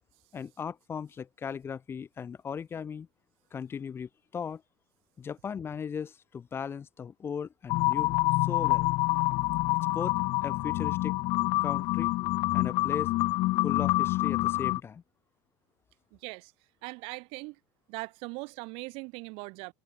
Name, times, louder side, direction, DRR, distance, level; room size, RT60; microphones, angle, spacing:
voice 1, 0.3-3.1 3.5-4.6 5.2-8.9 9.9-10.1 10.4-11.2 11.6-12.2 12.5-13.1 13.6-15.0, left 7 dB, 20° left, 5.6 m, -37 dB
sound 1, 7.7-14.8, left 20 dB, 45° left, 1.0 m, -27 dB
voice 2, 16.1-16.5 16.8-17.6 17.9-19.7, right 28 dB, 55° right, 7.1 m, -40 dB
cardioid pair, 155°, 11 cm